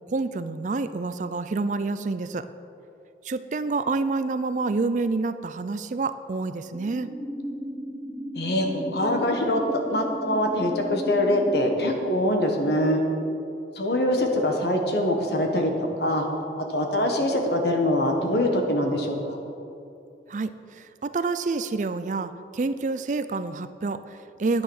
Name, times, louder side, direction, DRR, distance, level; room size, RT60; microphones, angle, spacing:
voice 1, 0.1-2.5 3.2-7.1 20.3-24.6, right 3 dB, 45° right, 12 dB, 0.4 m, -28 dB
sound 1, 6.7-11.7, equal, 5° right, 1.1 m, -35 dB
voice 2, 8.3-13.0 13.7-16.3 16.7-19.4, left 1 dB, 65° left, 3 dB, 1.5 m, -24 dB
9.7 x 9.6 x 6.4 m, 2.7 s
head